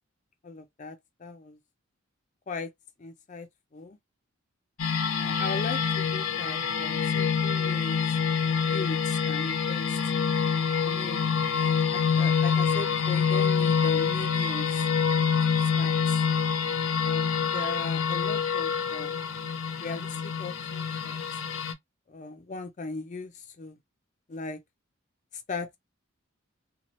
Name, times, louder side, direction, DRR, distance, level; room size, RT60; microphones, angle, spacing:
voice 1, 0.4-1.6 2.5-2.7 3.0-3.5 3.7-4.0 5.2-8.0 8.6-10.0 10.8-11.3 11.9-14.9 15.8-16.2 17.0-19.2 19.8-21.2 22.1-23.8 24.3-24.6 25.5-25.8, left 3 dB, 35° left, 0.4 m, -38 dB
sound 1, 4.8-21.7, left 6 dB, 75° left, 0.6 m, -26 dB
2.9 x 2.3 x 2.9 m
head